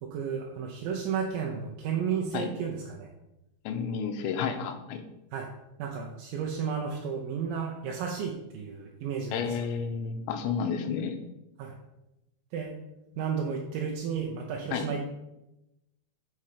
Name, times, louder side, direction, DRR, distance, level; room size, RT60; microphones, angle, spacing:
voice 1, 0.0-3.1 5.3-5.5 5.8-9.4 11.6-11.7 12.5-12.7 13.2-15.0, right 6 dB, 75° right, 0 dB, 2.2 m, -32 dB
voice 2, 3.7-5.0 9.3-11.2 14.7-14.9, left 6 dB, 90° left, 6 dB, 3.2 m, -31 dB
10.5 x 5.7 x 5.1 m, 0.93 s
omnidirectional pair, 5.1 m